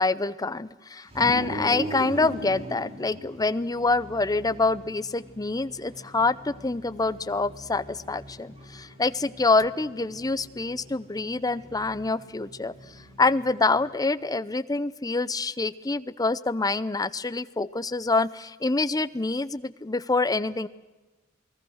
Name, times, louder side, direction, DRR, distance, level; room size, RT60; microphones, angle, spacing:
voice 1, 0.0-12.7 13.2-20.7, left 3 dB, 20° left, 15 dB, 0.6 m, -26 dB
sound 1, 1.1-13.9, equal, 30° right, 6.7 m, -41 dB
28.0 x 19.5 x 6.4 m, 1.2 s
head